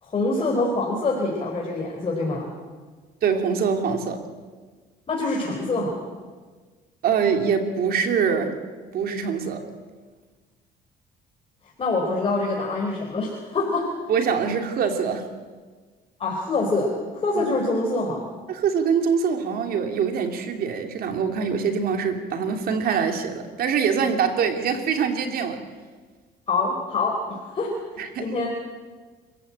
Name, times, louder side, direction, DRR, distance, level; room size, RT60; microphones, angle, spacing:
voice 1, 0.0-2.5 5.1-5.9 11.8-13.9 16.2-18.2 26.5-27.7 28.2-28.5, left 3 dB, 35° left, -2 dB, 4.8 m, -25 dB
voice 2, 3.2-4.2 7.0-8.6 8.9-9.6 14.1-15.3 17.4-17.5 18.5-25.6 28.0-28.3, right 6 dB, 60° right, 5 dB, 3.1 m, -24 dB
27.5 x 15.0 x 9.0 m, 1.4 s
cardioid pair, 110°, 17 cm